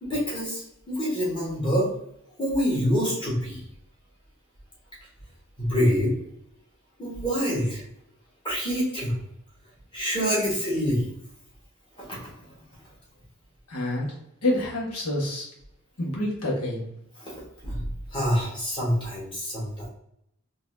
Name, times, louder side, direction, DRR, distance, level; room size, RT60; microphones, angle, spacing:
voice 1, 0.0-1.9 2.4-3.6 5.6-6.2 7.0-7.8 8.4-9.2 9.9-11.1 12.0-12.3 17.2-19.9, equal, 20° left, -5 dB, 1.4 m, -26 dB
voice 2, 13.7-14.1 14.4-15.5 16.0-16.9, left 1 dB, 80° left, -3 dB, 1.3 m, -27 dB
4.0 x 2.8 x 2.6 m, 0.77 s
head